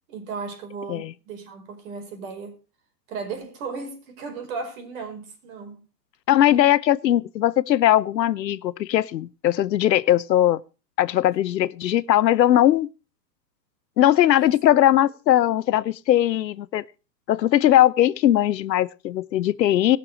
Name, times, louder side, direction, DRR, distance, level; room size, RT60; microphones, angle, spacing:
voice 1, 0.1-2.6 3.1-5.8 14.2-14.5, right 4 dB, 55° right, 5.2 m, -35 dB
voice 2, 6.3-10.6 11.0-12.9 14.0-16.8 17.3-20.0, left 12 dB, 85° left, 0.8 m, -19 dB
20.0 x 6.9 x 4.7 m
hypercardioid pair, 135°, 50 cm